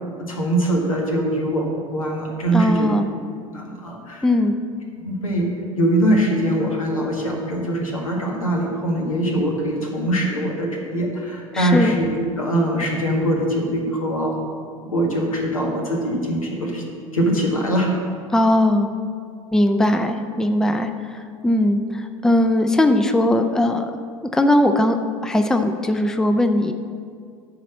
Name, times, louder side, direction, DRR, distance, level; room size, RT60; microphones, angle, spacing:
voice 1, 0.2-2.9 3.5-4.2 5.0-5.5 5.8-14.3 14.8-16.8 17.1-17.9, right 1 dB, 80° left, -1 dB, 1.7 m, -22 dB
voice 2, 2.5-3.1 4.2-4.5 11.5-11.9 18.3-18.9 19.5-23.9 24.3-25.0 25.2-26.7, left 1 dB, 5° left, 7 dB, 0.5 m, -19 dB
11.0 x 4.1 x 7.3 m, 2.2 s
figure-of-eight pair, 75°, 17 cm